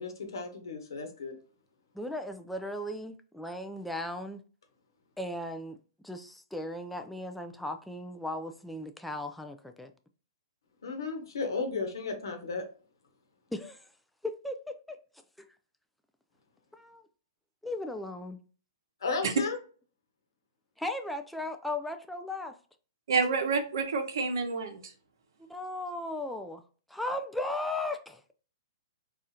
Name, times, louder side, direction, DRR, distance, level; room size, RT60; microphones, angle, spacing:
voice 1, 0.0-1.3 10.8-12.6 19.0-19.6, left 4 dB, 80° left, 1.0 m, -34 dB
voice 2, 1.9-4.4 5.2-5.8 6.0-9.9 13.5-13.8 14.2-15.0 16.7-17.0 17.6-18.4 20.8-22.5 25.5-26.6 26.9-28.3, left 1 dB, ahead, 0.3 m, -36 dB
voice 3, 23.1-24.8, right 4 dB, 70° right, 0.7 m, -28 dB
4.1 x 2.4 x 2.7 m
hypercardioid pair, 125°, 2 cm